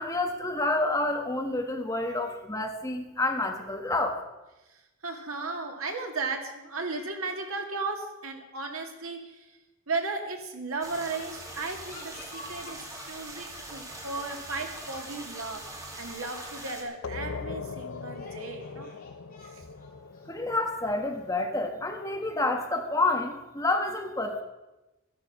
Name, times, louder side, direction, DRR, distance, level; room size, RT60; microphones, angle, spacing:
voice 1, 0.0-4.2 20.3-24.4, left 2 dB, 15° left, 3 dB, 1.4 m, -29 dB
voice 2, 4.7-9.5 9.9-18.9 19.5-19.6, right 3 dB, 90° right, 3 dB, 2.3 m, -35 dB
sound 1, 10.8-16.8, right 1 dB, 15° right, 2.0 m, -42 dB
sound 2, 11.5-13.4 13.6-14.0 14.7-14.8 15.2-15.3 15.6-16.6 17.0-17.1 17.7-21.3, left 2 dB, 45° left, 3.8 m, -51 dB
sound 3, 17.0-22.4, left 5 dB, 80° left, 0.6 m, -41 dB
14.0 x 11.5 x 6.0 m, 1.0 s
head